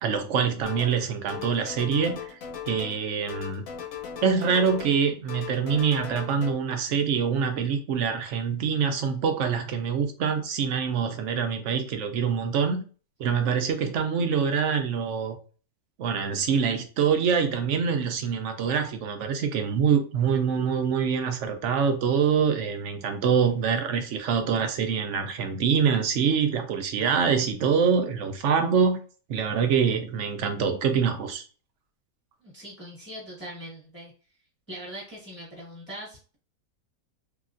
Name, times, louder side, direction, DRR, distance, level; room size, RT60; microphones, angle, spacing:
voice 1, 0.0-2.4 2.7-3.6 4.2-12.8 13.2-15.4 16.0-29.0 29.3-31.4, right 6 dB, 65° right, 6 dB, 0.7 m, -25 dB
sound 1, 0.6-1.0 1.3-3.0 3.3-5.0 5.3-6.5, left 8 dB, 70° left, 1.1 m, -38 dB
voice 2, 32.4-34.1 34.7-36.4, equal, 10° left, -5 dB, 1.1 m, -41 dB
3.1 x 2.8 x 2.4 m, 0.37 s
omnidirectional pair, 1.6 m